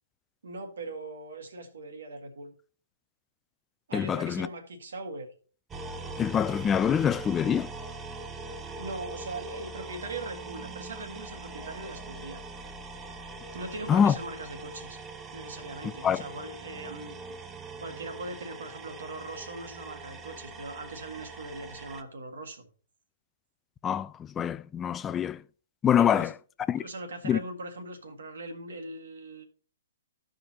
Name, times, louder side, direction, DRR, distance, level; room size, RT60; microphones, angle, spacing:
voice 1, 0.4-2.5 3.9-5.3 8.8-12.4 13.5-15.0 15.3-17.1 17.8-22.7 26.0-26.3 26.8-29.4, right 2 dB, 75° right, 1.7 m, -40 dB
voice 2, 3.9-4.5 6.2-7.7 13.9-14.2 16.0-16.2 23.8-25.4 25.8-26.3 26.7-26.8 27.2-27.4, left 8 dB, 15° left, 0.3 m, -25 dB
sound 1, 5.7-22.0, right 3 dB, 15° right, 0.7 m, -42 dB
14.0 x 5.1 x 2.9 m
hypercardioid pair, 130°, 0 cm